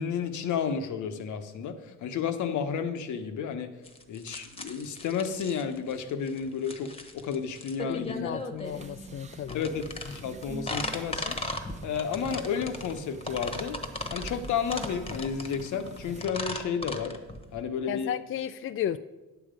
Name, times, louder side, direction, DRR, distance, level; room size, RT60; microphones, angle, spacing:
voice 1, 0.0-3.7 4.1-8.4 9.5-11.4 11.8-13.8 14.1-17.2 17.5-18.1, left 7 dB, 75° left, 8 dB, 0.9 m, -32 dB
sound 1, 3.8-17.6, left 2 dB, 20° left, 1.1 m, -37 dB
voice 2, 7.9-9.6 17.9-19.0, left 10 dB, 45° left, 11 dB, 0.4 m, -34 dB
sound 2, 8.6-16.3, right 2 dB, 25° right, 1.0 m, -46 dB
9.7 x 7.1 x 5.1 m, 1.1 s
cardioid pair, 90°, 30 cm